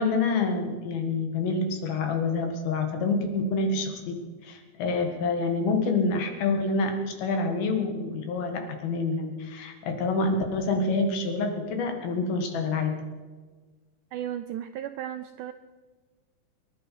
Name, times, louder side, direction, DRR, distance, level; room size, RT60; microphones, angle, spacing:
voice 1, 0.0-13.0, left 3 dB, 85° left, 4 dB, 3.7 m, -27 dB
voice 2, 14.1-15.5, right 11 dB, 85° right, 9 dB, 1.8 m, -35 dB
24.0 x 11.0 x 4.7 m, 1.4 s
omnidirectional pair, 4.2 m